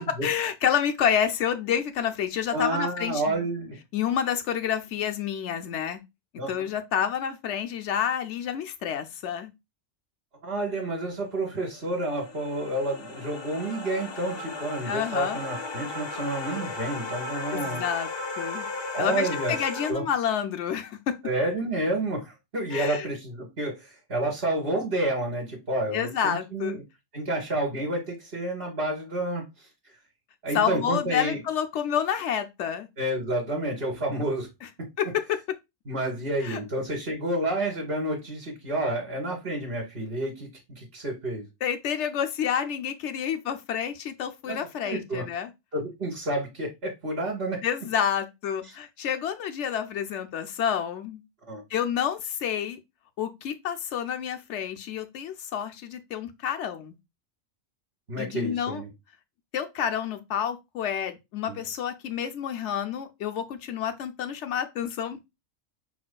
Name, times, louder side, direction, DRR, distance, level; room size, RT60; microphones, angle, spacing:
voice 1, 0.2-3.4 3.9-6.0 6.5-9.5 14.9-15.4 17.5-18.1 18.4-18.7 19.0-21.2 22.7-23.1 25.9-26.8 30.5-32.9 35.0-35.4 36.4-36.6 41.6-45.5 47.6-51.2 51.7-52.8 53.2-56.9 58.2-58.8 59.5-65.2, left 8 dB, 70° left, 0.9 m, -29 dB
voice 2, 2.5-3.8 6.4-6.5 10.4-17.8 18.9-19.5 19.9-20.0 21.2-26.8 27.1-29.4 30.4-31.4 33.0-34.5 35.9-40.5 40.7-41.4 44.5-44.6 44.8-45.2 45.7-47.6 51.5-51.6 58.1-58.9 61.5-61.6, right 1 dB, 45° right, 1.5 m, -29 dB
sound 1, 11.5-19.9, left 2 dB, 40° left, 0.3 m, -36 dB
5.2 x 4.2 x 2.2 m
omnidirectional pair, 1.3 m